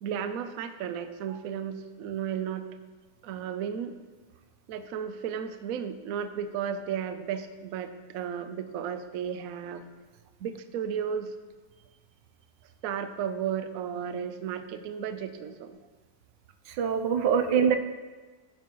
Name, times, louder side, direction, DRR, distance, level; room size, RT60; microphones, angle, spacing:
voice 1, 0.0-2.8 3.2-4.0 4.7-9.8 10.4-11.3 12.8-15.8, right 8 dB, 65° right, 9 dB, 0.9 m, -34 dB
voice 2, 16.7-17.8, right 7 dB, 80° right, 8 dB, 1.3 m, -24 dB
11.5 x 9.3 x 3.0 m, 1.3 s
omnidirectional pair, 1.9 m